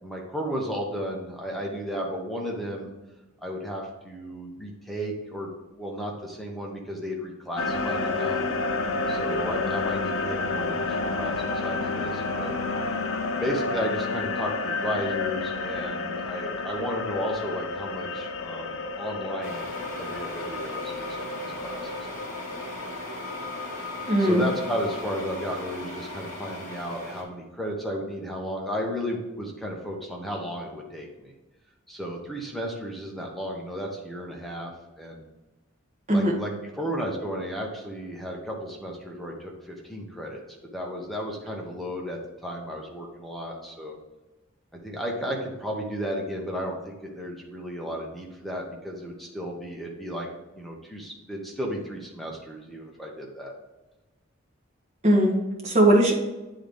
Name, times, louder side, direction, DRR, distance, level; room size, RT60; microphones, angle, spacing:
voice 1, 0.0-2.9 3.4-8.4 9.1-12.5 13.4-19.6 20.0-21.9 24.2-31.3 31.9-34.7 35.0-35.3 36.1-40.4 40.7-43.9 44.8-50.3 50.5-53.5, equal, ahead, -1 dB, 0.9 m, -33 dB
sound 1, 7.6-25.0, left 3 dB, 75° left, 0.7 m, -31 dB
sound 2, 19.4-27.2, left 1 dB, 35° left, 1.7 m, -38 dB
voice 2, 24.0-24.5 36.1-36.3 55.0-56.1, right 1 dB, 30° right, -1 dB, 1.3 m, -20 dB
8.7 x 3.9 x 3.4 m, 1.1 s
head